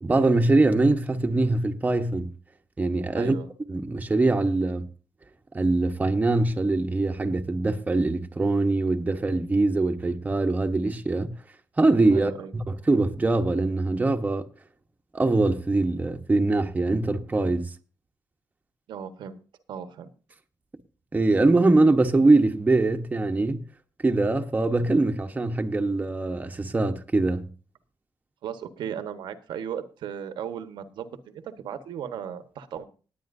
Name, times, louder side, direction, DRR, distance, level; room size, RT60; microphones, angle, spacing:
voice 1, 0.0-2.3 2.8-3.4 3.7-4.9 5.5-11.3 11.8-14.4 15.1-17.7 21.1-23.6 24.0-27.5, right 2 dB, 20° right, 1.1 m, -23 dB
voice 2, 3.1-3.5 12.1-12.5 18.9-19.4 19.7-20.1 28.4-32.8, right 8 dB, 85° right, 1.3 m, -36 dB
19.5 x 8.8 x 2.7 m
cardioid pair, 105°, 8 cm